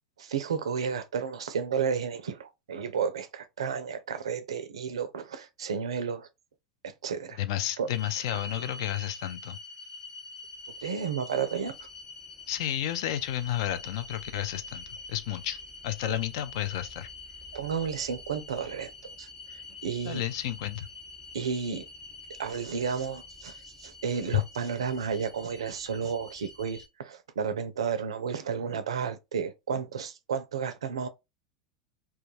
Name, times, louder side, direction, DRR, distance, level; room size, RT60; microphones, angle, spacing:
voice 1, 0.2-6.3 6.8-7.4 7.8-7.9 8.3-8.4 10.8-11.8 16.1-16.2 17.5-18.9 19.2-20.2 21.3-21.8 22.4-31.1, right 6 dB, 80° right, 0.4 m, -32 dB
voice 2, 7.4-9.6 12.5-17.1 20.0-20.9 24.3-24.4, left 12 dB, 65° left, 0.4 m, -31 dB
sound 1, 7.9-26.9, left 3 dB, 10° left, 1.0 m, -45 dB
2.3 x 2.2 x 3.0 m
hypercardioid pair, 85°, 3 cm